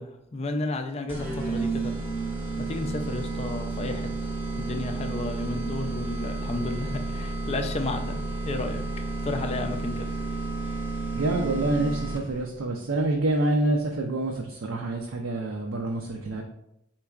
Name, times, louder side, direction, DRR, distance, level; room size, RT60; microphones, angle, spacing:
voice 1, 0.0-1.9 2.7-8.8 9.2-10.1, left 2 dB, 30° left, 6 dB, 0.4 m, -32 dB
sound 1, 1.1-12.5, right 3 dB, 10° right, 0.6 m, -31 dB
voice 2, 11.1-16.4, right 2 dB, 70° right, 1 dB, 0.5 m, -27 dB
4.4 x 3.9 x 2.4 m, 0.79 s
head